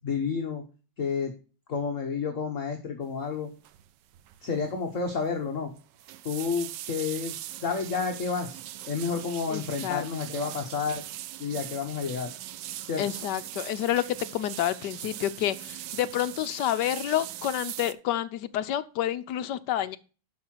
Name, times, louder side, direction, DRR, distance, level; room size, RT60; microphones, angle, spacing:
voice 1, 0.0-0.6 1.0-1.3 1.7-3.5 4.4-5.7 6.2-11.0 11.4-12.3 12.8-13.0, left 5 dB, 45° left, 3 dB, 1.3 m, -30 dB
sound 1, 3.6-3.9 4.1-4.5 4.7-4.8 5.8-17.9, right 13 dB, 75° right, 1.1 m, -41 dB
voice 2, 9.5-10.0 13.0-20.0, left 12 dB, 70° left, 12 dB, 1.1 m, -29 dB
11.5 x 5.5 x 4.5 m, 0.34 s
omnidirectional pair, 2.2 m